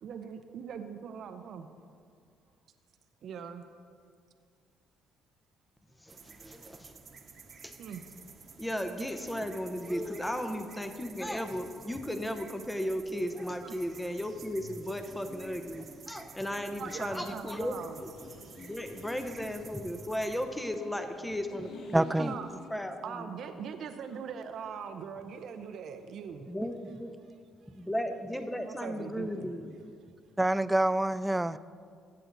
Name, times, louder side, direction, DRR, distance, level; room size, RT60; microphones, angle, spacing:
voice 1, 0.0-1.7 3.2-3.6 7.8-8.0 9.0-9.1 13.6-13.7 16.8-18.0 22.2-22.5 23.0-26.5 27.6-27.8 28.6-29.5, right 7 dB, 65° right, 7 dB, 0.6 m, -41 dB
voice 2, 6.0-6.9 7.6-7.7 8.6-17.7 18.0-18.1 18.6-22.4 22.7-23.0 26.5-27.1 27.7-29.7, equal, 5° left, 7 dB, 0.8 m, -35 dB
sound 1, 6.1-20.4, right 5 dB, 45° right, 1.1 m, -52 dB
sound 2, 9.1-22.7, left 2 dB, 70° left, 1.4 m, -53 dB
voice 3, 21.9-22.3 30.4-31.6, right 1 dB, 10° right, 16 dB, 0.3 m, -26 dB
15.0 x 7.8 x 4.0 m, 2.2 s
cardioid pair, 80°, 0 cm